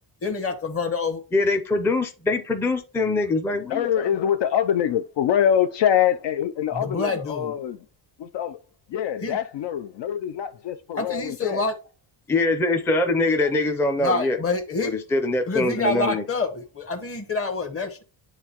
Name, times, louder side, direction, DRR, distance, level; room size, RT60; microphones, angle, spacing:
voice 1, 0.2-1.2 6.7-7.6 9.2-9.4 10.9-11.7 14.0-14.9 15.5-18.0, left 3 dB, 30° left, 1.2 m, -27 dB
voice 2, 1.3-3.9 12.3-14.4 14.8-16.2, left 2 dB, 5° left, 0.5 m, -23 dB
voice 3, 3.7-7.8 8.2-8.6 8.9-11.6, left 9 dB, 60° left, 0.5 m, -24 dB
9.8 x 3.7 x 2.9 m
cardioid pair, 145°, 49 cm